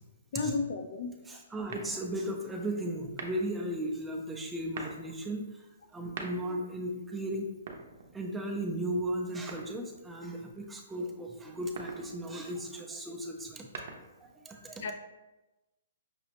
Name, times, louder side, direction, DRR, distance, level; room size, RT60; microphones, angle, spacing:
voice 1, 0.3-1.4 14.8-14.9, left 4 dB, 55° left, 7 dB, 0.4 m, -33 dB
voice 2, 1.3-5.4 5.9-7.5 8.1-13.7 14.4-14.8, right 1 dB, 10° right, 1 dB, 0.4 m, -36 dB
sound 1, 1.7-2.3 3.1-3.6 4.5-5.1 5.9-6.7 7.5-8.4 9.5-10.1 11.5-12.1 13.4-14.3, right 4 dB, 55° right, 0.6 m, -44 dB
5.9 x 2.1 x 2.8 m, 1.0 s
hypercardioid pair, 155°, 0 cm